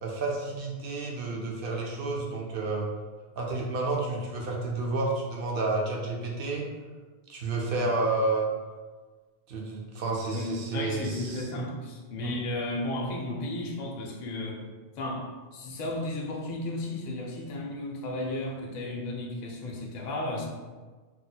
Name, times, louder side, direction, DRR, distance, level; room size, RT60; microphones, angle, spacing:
voice 1, 0.0-2.9 3.4-6.7 7.3-8.5 9.5-11.4 12.2-12.3, right 3 dB, 60° right, -1 dB, 0.7 m, -30 dB
voice 2, 10.3-14.6 15.0-20.5, left 1 dB, 50° left, 0 dB, 0.5 m, -34 dB
2.8 x 2.1 x 4.0 m, 1.4 s
omnidirectional pair, 1.2 m